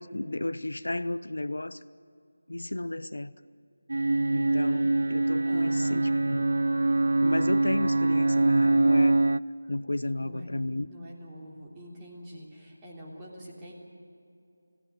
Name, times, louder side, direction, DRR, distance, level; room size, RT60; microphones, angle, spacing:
voice 1, 0.0-1.8 2.5-3.3 4.3-6.4 7.2-9.2 9.7-10.9, left 2 dB, 70° left, 14 dB, 0.7 m, -33 dB
sound 1, 3.9-9.4, right 2 dB, 60° right, 0.4 m, -24 dB
voice 2, 5.5-6.2 9.6-9.7 10.2-10.5 10.8-13.7, equal, 15° right, -4 dB, 3.5 m, -45 dB
22.5 x 16.5 x 9.2 m, 2.5 s
figure-of-eight pair, 165°, 0 cm